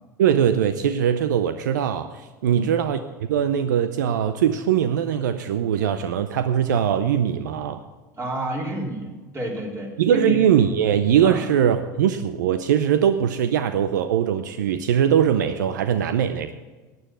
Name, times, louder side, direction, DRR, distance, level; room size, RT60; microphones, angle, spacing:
voice 1, 0.2-3.0 3.3-7.8 10.0-16.5, right 9 dB, 80° right, 10 dB, 0.6 m, -21 dB
voice 2, 8.2-10.4 11.2-11.4, right 1 dB, 30° right, -2 dB, 3.9 m, -29 dB
12.0 x 9.3 x 6.2 m, 1.3 s
hypercardioid pair, 80°, 10 cm